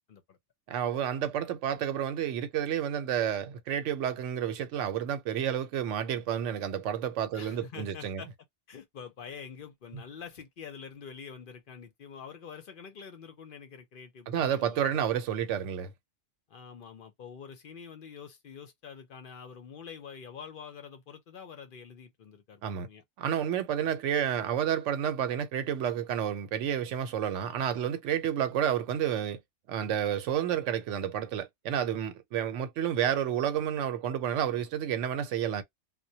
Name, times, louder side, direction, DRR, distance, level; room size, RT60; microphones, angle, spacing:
voice 1, 0.7-8.2 14.3-15.9 22.6-22.9 23.2-29.4 29.7-35.6, right 9 dB, 90° right, 0.9 m, -30 dB
voice 2, 7.3-8.3 8.7-14.9 16.5-23.0 23.8-23.9, left 6 dB, 55° left, 0.7 m, -46 dB
2.2 x 2.1 x 2.6 m
omnidirectional pair, 1.2 m